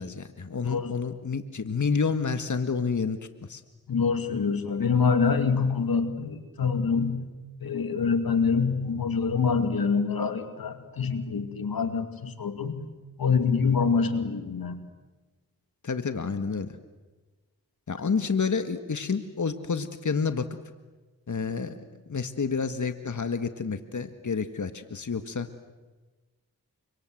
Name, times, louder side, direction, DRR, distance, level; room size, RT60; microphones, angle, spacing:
voice 1, 0.0-3.6 15.8-16.7 17.9-20.5 21.3-25.5, left 5 dB, 55° left, 9 dB, 1.8 m, -29 dB
voice 2, 3.9-7.2 7.6-12.9 13.2-14.8, left 5 dB, 85° left, 8 dB, 2.4 m, -25 dB
29.5 x 25.5 x 7.9 m, 1.2 s
cardioid pair, 45°, 35 cm